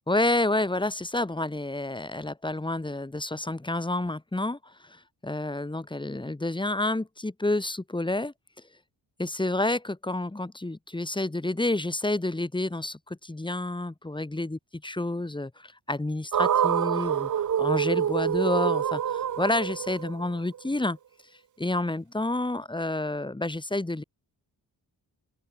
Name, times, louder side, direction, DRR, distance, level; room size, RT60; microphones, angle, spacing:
voice 1, 0.1-8.3 9.2-21.0 21.6-24.0, left 2 dB, 10° left, 2.5 m, -29 dB
sound 1, 16.3-20.6, right 9 dB, 45° right, 0.8 m, -26 dB
open air
wide cardioid pair, 115°, 41 cm